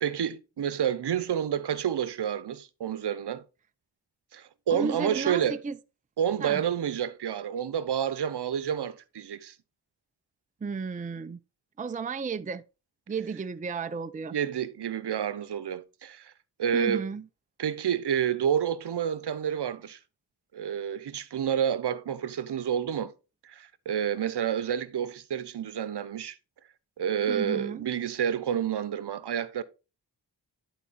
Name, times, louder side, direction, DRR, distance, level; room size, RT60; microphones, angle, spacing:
voice 1, 0.0-3.4 4.3-5.6 6.2-9.5 14.3-16.3 16.6-17.1 17.6-20.0 20.5-23.1 23.4-26.4 27.0-29.6, right 8 dB, 60° right, 0.9 m, -29 dB
voice 2, 4.7-5.8 6.4-6.6 10.6-11.4 11.8-12.6 13.1-14.4 16.7-17.2 27.3-27.8, right 5 dB, 20° right, 0.5 m, -33 dB
11.0 x 4.0 x 4.1 m
cardioid pair, 55°, 46 cm